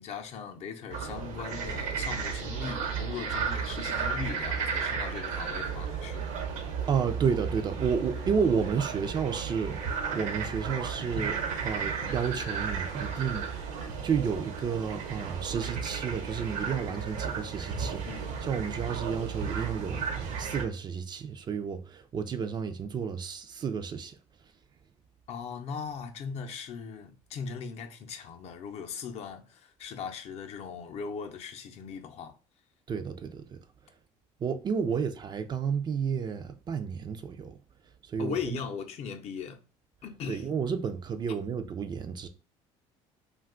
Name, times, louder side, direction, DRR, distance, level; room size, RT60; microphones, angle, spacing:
voice 1, 0.0-6.3 10.7-10.8 11.2-11.3 18.0-18.8 25.3-32.3 34.9-35.0 38.2-39.6 40.0-40.5, left 6 dB, 55° left, 0.6 m, -39 dB
sound 1, 0.9-20.6, right 6 dB, 65° right, 0.8 m, -34 dB
voice 2, 6.9-24.2 32.9-33.6 34.4-37.6 38.0-38.6 40.3-42.3, right 6 dB, 35° right, 0.4 m, -31 dB
2.5 x 2.3 x 3.6 m
cardioid pair, 105°, 13 cm